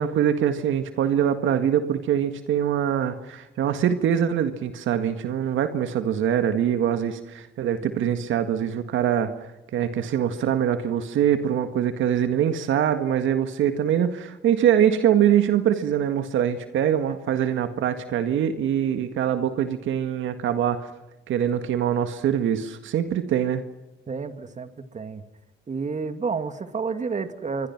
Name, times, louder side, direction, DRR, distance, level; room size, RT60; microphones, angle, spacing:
voice 1, 0.0-20.9 21.3-23.6, right 9 dB, 80° right, 9 dB, 1.8 m, -23 dB
voice 2, 24.1-25.2 25.7-27.7, right 5 dB, 35° right, 9 dB, 2.4 m, -30 dB
27.5 x 23.5 x 6.0 m, 1.0 s
cardioid pair, 90°, 20 cm